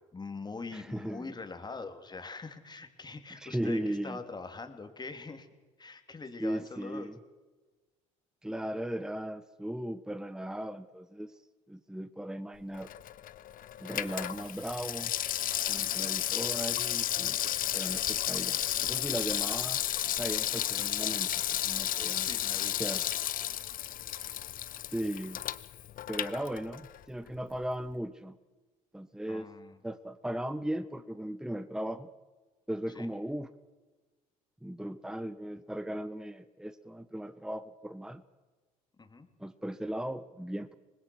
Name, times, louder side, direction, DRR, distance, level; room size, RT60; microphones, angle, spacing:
voice 1, 0.1-5.5 5.8-7.1 15.7-16.1 22.2-22.9 29.3-29.8 32.9-33.1 39.0-39.3, left 3 dB, 25° left, 7 dB, 3.1 m, -43 dB
voice 2, 0.7-1.3 3.4-4.2 6.4-7.2 8.4-11.3 11.7-12.9 13.8-15.1 15.7-19.8 20.2-22.3 22.8-23.0 24.9-25.4 26.1-28.4 28.9-29.5 29.8-32.1 32.7-33.5 34.6-38.2 39.4-40.7, right 1 dB, 5° right, 13 dB, 1.1 m, -37 dB
Water tap faucet / Sink (filling or washing), 12.7-27.0 27.3-27.4, left 11 dB, 50° left, 1.0 m, -33 dB
25.5 x 20.5 x 6.4 m, 1.3 s
hypercardioid pair, 65°, 18 cm